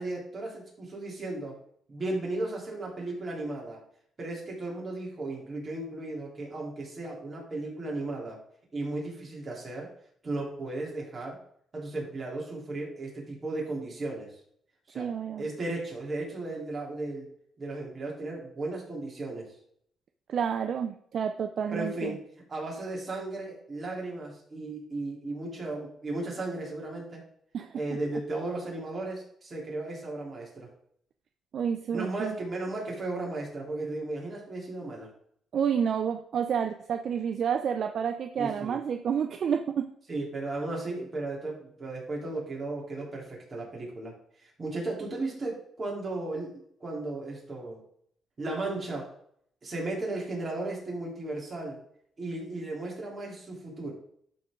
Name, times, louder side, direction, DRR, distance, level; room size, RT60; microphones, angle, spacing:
voice 1, 0.0-1.6 1.9-3.8 4.2-8.4 8.7-9.9 10.2-11.4 11.7-14.4 14.9-15.1 15.4-17.3 17.6-19.6 21.7-22.2 22.5-27.2 27.7-30.7 31.9-35.1 38.4-38.8 40.1-47.8 48.4-49.1 49.6-51.8 52.2-53.9, right 2 dB, 35° right, -2 dB, 3.5 m, -35 dB
voice 2, 15.0-15.5 20.3-22.2 27.5-27.8 31.5-32.4 35.5-39.9, right 7 dB, 60° right, 7 dB, 0.5 m, -29 dB
11.5 x 4.5 x 3.8 m, 0.66 s
cardioid pair, 90°, 0 cm